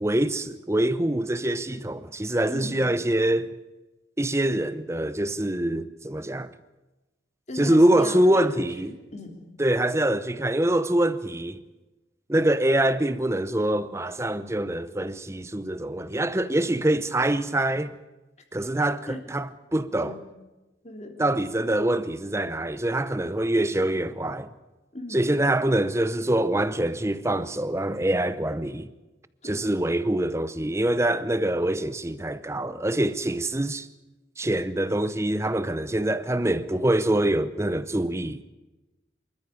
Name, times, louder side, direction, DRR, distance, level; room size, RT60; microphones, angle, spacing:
voice 1, 0.0-3.5 4.2-6.5 7.6-8.9 9.6-11.6 12.3-18.0 18.5-20.2 21.2-24.5 25.1-28.9 29.4-33.9 34.4-38.4, right 1 dB, 15° right, 0.7 m, -24 dB
voice 2, 2.5-2.9 7.5-9.4 19.1-19.2 20.0-20.2 20.8-21.4 24.9-25.2 29.4-29.7, left 2 dB, 40° left, 3.3 m, -37 dB
26.0 x 14.0 x 8.6 m
head